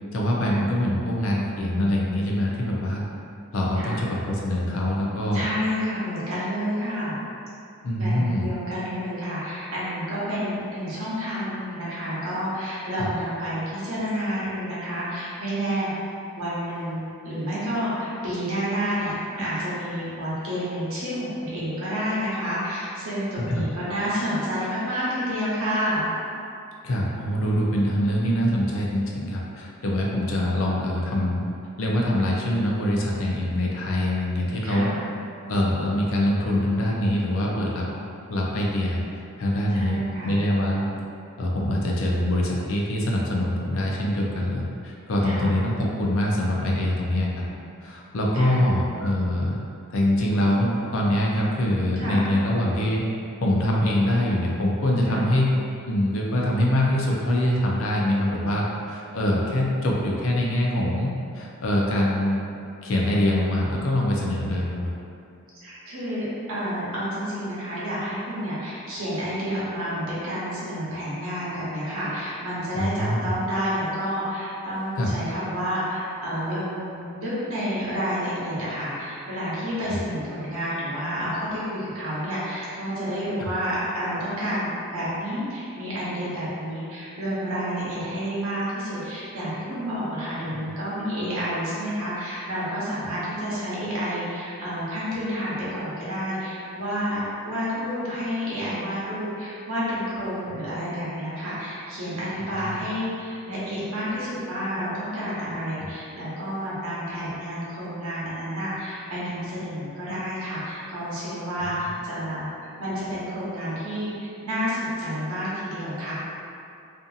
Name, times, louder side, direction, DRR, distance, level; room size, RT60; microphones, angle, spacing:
voice 1, 0.1-3.1 3.5-5.5 7.8-8.5 13.0-13.1 23.5-23.6 26.8-31.4 31.8-34.9 35.5-37.9 38.3-39.0 39.4-40.9 41.4-47.4 47.8-49.6 49.9-53.1 53.4-55.5 55.9-62.5 62.8-64.9 72.7-73.3 75.0-75.1 79.9-80.0 83.4-83.5 90.5-90.7 102.5-102.8, left 1 dB, 65° left, -3 dB, 0.4 m, -24 dB
voice 2, 5.3-7.1 8.0-16.0 16.4-26.1 34.6-34.9 39.7-40.4 45.2-45.5 48.3-48.7 52.0-52.3 55.0-55.2 65.5-97.2 97.5-112.5 112.8-116.2, equal, 70° right, -9 dB, 0.9 m, -29 dB
2.6 x 2.6 x 2.4 m, 2.5 s
head